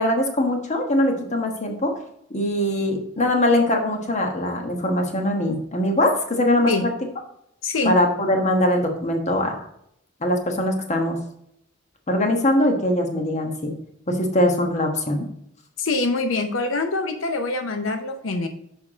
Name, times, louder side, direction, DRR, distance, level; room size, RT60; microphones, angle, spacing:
voice 1, 0.0-1.9 2.3-6.9 7.8-9.6 10.2-11.2 12.1-13.7 14.1-15.3, left 1 dB, 35° left, 3 dB, 1.2 m, -22 dB
voice 2, 7.6-8.0 15.8-18.5, left 3 dB, 85° left, 6 dB, 0.7 m, -24 dB
6.5 x 4.7 x 4.9 m, 0.74 s
head